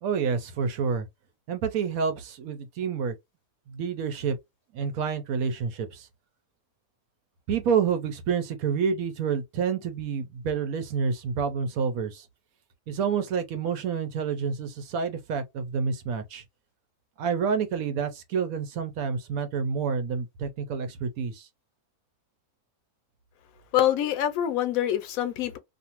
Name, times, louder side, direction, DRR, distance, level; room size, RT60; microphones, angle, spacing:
voice 1, 0.0-1.1 1.5-3.2 3.7-4.4 4.7-6.1 7.5-12.3 12.9-16.4 17.2-21.5, right 6 dB, 75° right, 1.1 m, -28 dB
voice 2, 23.7-25.6, left 11 dB, 75° left, 1.0 m, -25 dB
2.6 x 2.5 x 2.8 m
omnidirectional pair, 1.6 m